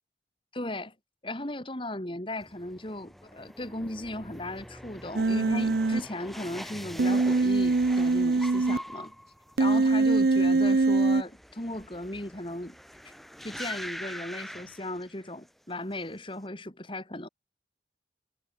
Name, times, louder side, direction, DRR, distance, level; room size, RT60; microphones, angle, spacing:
voice 1, 0.5-0.9 1.2-9.2 9.6-12.8 13.0-13.1 13.4-17.3, left 1 dB, 30° left, 2.9 m, -37 dB
sound 1, 2.4-15.5 15.8-16.4, equal, ahead, 1.9 m, -44 dB
Human voice, 5.1-6.0 7.0-8.8 9.6-11.2, right 3 dB, 55° right, 0.6 m, -23 dB
head